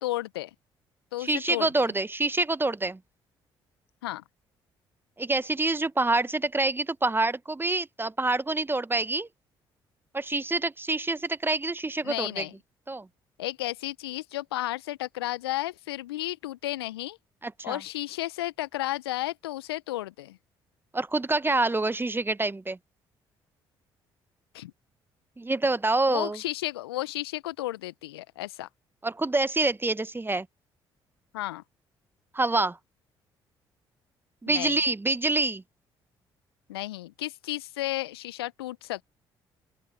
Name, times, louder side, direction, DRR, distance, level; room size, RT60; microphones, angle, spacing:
voice 1, 0.0-0.5 1.1-1.9 4.0-4.2 12.0-12.5 13.4-17.2 17.6-20.4 24.5-24.7 26.1-28.7 31.3-31.6 34.5-34.8 36.7-39.0, left 16 dB, 80° left, 1.4 m, -33 dB
voice 2, 1.2-3.0 5.2-9.3 10.1-12.4 12.9-13.1 17.4-17.8 20.9-22.8 25.4-26.4 29.0-30.5 32.3-32.8 34.4-35.6, right 2 dB, 15° right, 1.1 m, -26 dB
open air
figure-of-eight pair, 45°, 13 cm